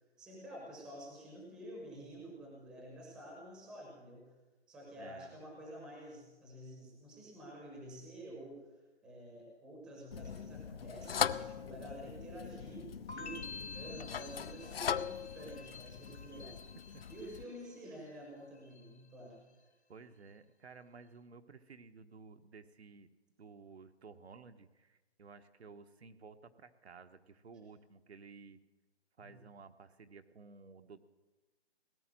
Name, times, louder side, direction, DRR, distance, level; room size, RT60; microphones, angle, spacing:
voice 1, 0.2-4.3 4.7-16.6 17.1-19.4 29.2-29.4, right 1 dB, ahead, -2 dB, 0.8 m, -50 dB
voice 2, 5.0-5.4 16.9-17.0 19.9-23.1 23.4-28.6 29.2-31.0, right 4 dB, 70° right, 8 dB, 1.2 m, -54 dB
sound 1, 10.1-17.4, left 7 dB, 60° left, 0.6 m, -40 dB
sound 2, 13.1-18.1 18.4-19.1, left 4 dB, 80° left, 1.8 m, -51 dB
18.0 x 10.5 x 7.5 m, 1.1 s
hypercardioid pair, 170°, 33 cm